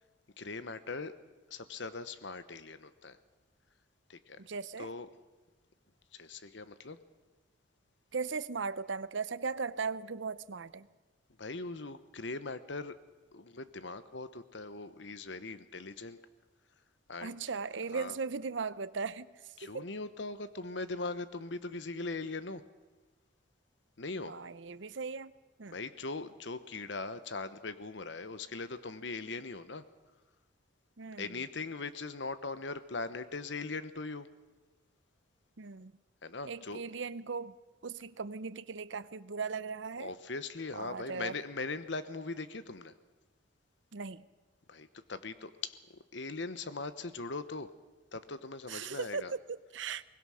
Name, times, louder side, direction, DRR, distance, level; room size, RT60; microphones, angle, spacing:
voice 1, 0.4-1.1 1.5-3.2 4.1-4.4 4.8-5.1 6.1-7.0 11.4-12.9 13.3-16.2 17.1-17.4 17.9-18.2 19.6-22.6 24.0-24.3 25.7-29.8 31.2-34.3 36.2-36.9 40.0-43.0 44.7-45.8 46.1-47.7 48.1-49.3, left 3 dB, 65° left, 13 dB, 1.0 m, -40 dB
voice 2, 4.4-4.9 8.1-10.9 17.2-19.9 24.3-25.3 25.6-25.8 31.0-31.3 35.6-36.0 36.4-37.5 37.8-40.1 40.8-41.4 43.9-44.2 48.7-50.0, right 5 dB, 70° right, 16 dB, 0.7 m, -38 dB
22.5 x 20.0 x 6.4 m, 1.2 s
head